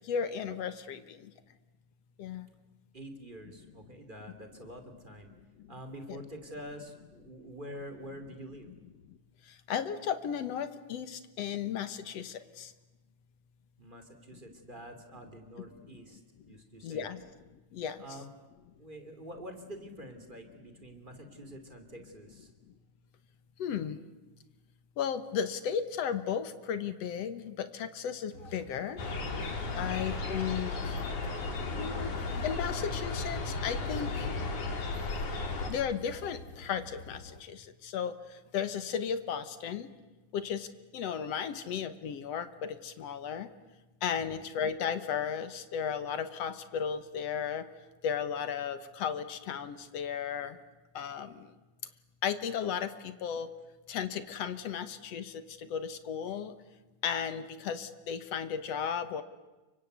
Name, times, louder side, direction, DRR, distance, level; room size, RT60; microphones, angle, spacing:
voice 1, 0.1-1.0 2.2-2.4 6.1-6.2 9.7-12.7 16.8-17.2 17.7-18.0 23.6-24.0 25.0-29.0 29.8-31.0 31.8-32.1 32.4-34.1 35.7-37.2 37.5-38.2 38.5-39.9 40.3-40.7 40.9-43.5 44.0-47.6 48.0-50.6 51.0-51.3 52.2-53.5 53.9-55.3 55.7-56.5 57.0-59.2, left 7 dB, 65° left, 12 dB, 2.1 m, -34 dB
voice 2, 2.9-5.3 5.7-8.7 13.8-16.2 16.5-17.1 18.0-18.3 18.8-22.5 29.6-29.9 44.1-44.4, equal, 15° right, 7 dB, 2.8 m, -46 dB
sound 1, 28.3-37.4, left 2 dB, 45° left, 1.1 m, -49 dB
sound 2, 29.0-35.7, left 3 dB, 80° left, 4.7 m, -34 dB
29.0 x 24.5 x 8.2 m, 1.1 s
omnidirectional pair, 3.5 m